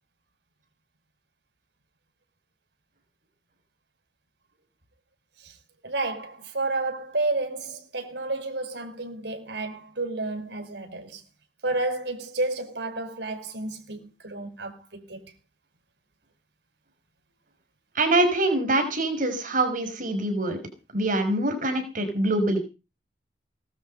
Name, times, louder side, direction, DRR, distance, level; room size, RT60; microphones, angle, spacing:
voice 1, 5.8-11.2 11.6-15.3, right 2 dB, 75° right, 5.1 m, -31 dB
voice 2, 17.9-20.6 20.9-22.6, right 2 dB, 50° right, 6.0 m, -24 dB
20.0 x 12.5 x 5.5 m
head